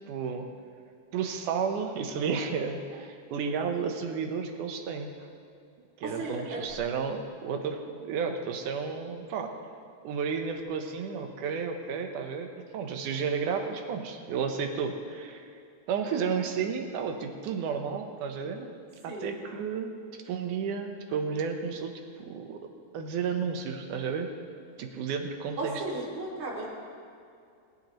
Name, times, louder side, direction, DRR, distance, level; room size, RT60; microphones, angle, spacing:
voice 1, 0.1-0.5 1.1-5.3 6.0-9.5 10.0-15.5 15.9-18.7 19.0-19.9 20.3-21.9 22.3-24.3 24.8-25.8, right 6 dB, 85° right, 4 dB, 2.5 m, -32 dB
voice 2, 6.0-6.6 19.1-19.3 25.6-26.7, right 2 dB, 65° right, -4 dB, 3.9 m, -35 dB
21.5 x 10.5 x 3.1 m, 2.4 s
omnidirectional pair, 3.5 m